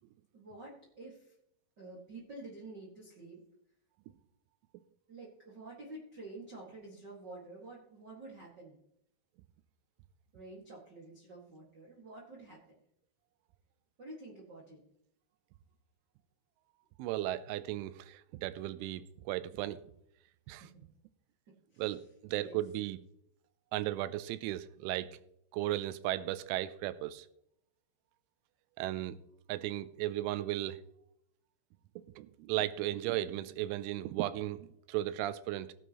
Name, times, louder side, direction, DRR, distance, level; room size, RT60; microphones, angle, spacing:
voice 1, 0.3-1.3 1.8-3.4 5.1-8.8 10.3-12.6 14.0-14.8 20.6-20.8 21.7-21.9 22.4-22.6, right 2 dB, 65° right, -4 dB, 1.0 m, -49 dB
voice 2, 17.0-19.8 20.5-20.7 21.8-23.0 23.7-25.2 25.5-27.3 28.8-29.2 29.5-30.8 32.2-35.7, right 14 dB, 85° right, 14 dB, 3.0 m, -35 dB
17.5 x 8.2 x 3.0 m, 0.76 s
omnidirectional pair, 5.6 m